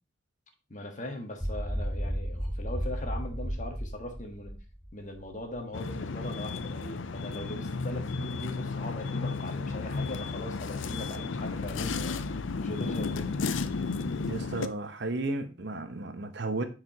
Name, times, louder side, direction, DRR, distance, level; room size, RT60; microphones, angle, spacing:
voice 1, 0.7-4.5 4.9-13.5, left 1 dB, 40° left, 1.5 m, -40 dB
sound 1, 1.4-5.6, equal, 5° right, 2.1 m, -34 dB
sound 2, 5.7-14.7, left 4 dB, 75° left, 0.5 m, -33 dB
voice 2, 14.2-16.7, right 2 dB, 60° right, 0.9 m, -33 dB
9.6 x 4.9 x 2.9 m
head